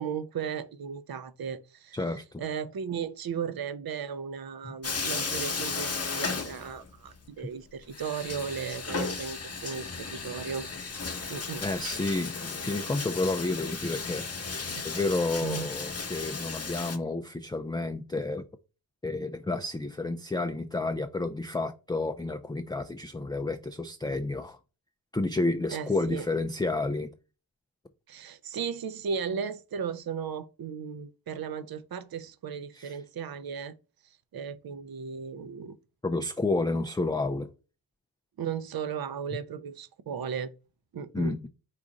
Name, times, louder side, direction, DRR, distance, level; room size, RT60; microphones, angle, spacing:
voice 1, 0.0-2.0 2.4-10.7 11.3-11.6 14.6-14.8 15.4-15.7 25.7-26.2 28.1-33.7 34.3-35.8 38.4-40.5 40.9-41.3, right 7 dB, 50° right, 0.7 m, -36 dB
voice 2, 1.9-2.4 4.6-4.7 11.6-14.3 14.8-18.5 19.0-24.6 25.1-27.1 32.7-33.0 36.0-37.5 41.1-41.5, left 2 dB, 10° left, 0.5 m, -30 dB
Bathtub (filling or washing), 4.8-7.1 7.4-7.5 7.9-17.0, left 4 dB, 30° left, 1.1 m, -35 dB
5.1 x 2.4 x 4.0 m
supercardioid pair, 40°, 46 cm